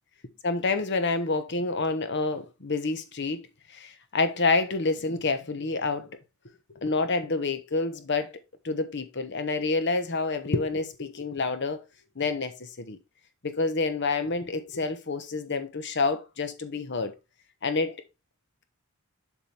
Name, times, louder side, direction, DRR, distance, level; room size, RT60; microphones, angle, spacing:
voice 1, 0.4-3.4 3.7-6.1 6.8-8.3 8.6-11.8 12.2-13.0 13.4-17.1 17.6-18.0, left 3 dB, 55° left, 1.1 m, -28 dB
7.4 x 6.0 x 3.4 m
head